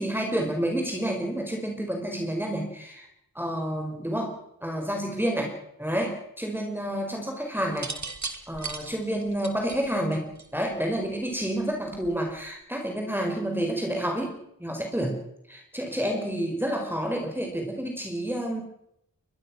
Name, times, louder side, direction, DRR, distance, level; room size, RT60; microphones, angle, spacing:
voice 1, 0.0-3.1 3.3-7.9 8.5-15.2 15.5-18.6, right 1 dB, 5° right, 2 dB, 4.9 m, -29 dB
sound 1, 7.7-10.8 11.9-12.3, right 4 dB, 50° right, 2.6 m, -37 dB
22.5 x 22.0 x 6.2 m, 0.79 s
wide cardioid pair, 65°, 36 cm